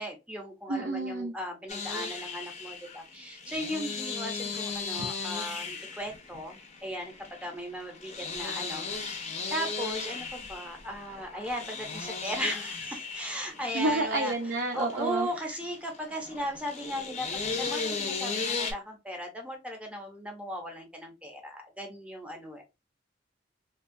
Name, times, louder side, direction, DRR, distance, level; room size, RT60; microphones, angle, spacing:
voice 1, 0.0-7.1 7.4-14.3 14.7-22.6, equal, 5° right, 3 dB, 0.6 m, -37 dB
voice 2, 0.7-1.3 13.7-15.3, right 2 dB, 60° right, 2 dB, 0.5 m, -29 dB
sound 1, 1.7-18.7, left 4 dB, 35° left, 0.5 m, -36 dB
2.8 x 2.2 x 2.5 m, 0.25 s
head